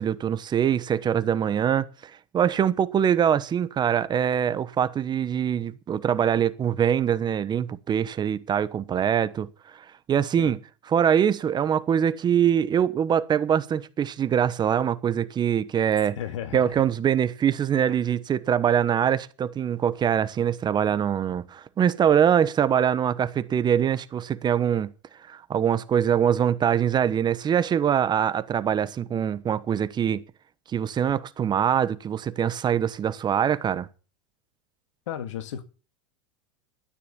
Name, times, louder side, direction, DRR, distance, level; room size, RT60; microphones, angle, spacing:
voice 1, 0.0-10.6 10.9-16.2 16.5-24.9 25.3-30.2 30.7-33.9, right 9 dB, 25° right, 1.0 m, -23 dB
voice 2, 16.2-16.8 35.1-35.6, left 9 dB, 75° left, 2.0 m, -34 dB
13.0 x 9.9 x 6.9 m
hypercardioid pair, 105°, 16 cm